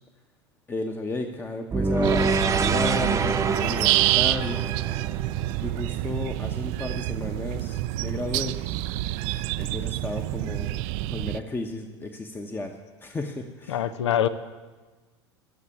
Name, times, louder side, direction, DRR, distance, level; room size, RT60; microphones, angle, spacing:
voice 1, 0.7-4.7 5.6-8.6 9.6-10.7 11.1-14.1, left 2 dB, 15° left, 5 dB, 1.0 m, -33 dB
sound 1, 1.7-6.0, right 4 dB, 20° right, 0.8 m, -26 dB
sound 2, 2.0-11.4, right 16 dB, 50° right, 0.4 m, -27 dB
voice 2, 13.7-14.3, left 10 dB, 75° left, 15 dB, 0.7 m, -24 dB
14.5 x 6.7 x 8.6 m, 1.3 s
hypercardioid pair, 85°, 15 cm